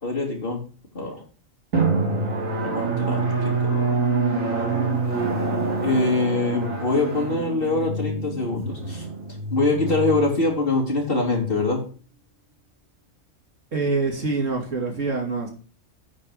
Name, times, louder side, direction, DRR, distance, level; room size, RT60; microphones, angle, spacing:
voice 1, 0.0-0.6 0.9-1.2 2.6-3.9 5.8-9.1 9.5-11.8, left 2 dB, 45° left, -2 dB, 3.6 m, -24 dB
Drum, 1.7-11.0, right 3 dB, 85° right, 3.0 m, -26 dB
voice 2, 13.7-15.5, right 3 dB, 70° right, 0 dB, 3.2 m, -25 dB
9.6 x 5.0 x 6.6 m, 0.37 s
omnidirectional pair, 1.4 m